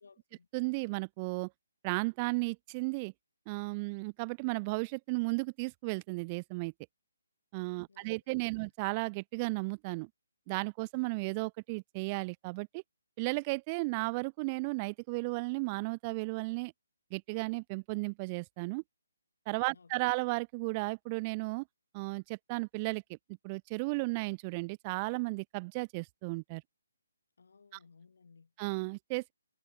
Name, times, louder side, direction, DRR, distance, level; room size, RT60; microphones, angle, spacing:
voice 1, 0.0-0.5 7.9-8.2 8.5-8.7 19.7-19.9 27.4-28.5, left 5 dB, 55° left, 1.5 m, -60 dB
voice 2, 0.5-1.5 1.8-3.1 3.5-6.7 7.5-10.1 10.5-12.8 13.2-16.7 17.1-18.8 19.5-21.6 21.9-23.2 23.4-26.6 27.7-27.8 28.6-29.3, right 28 dB, 25° right, 0.4 m, -34 dB
figure-of-eight pair, 140°, 0 cm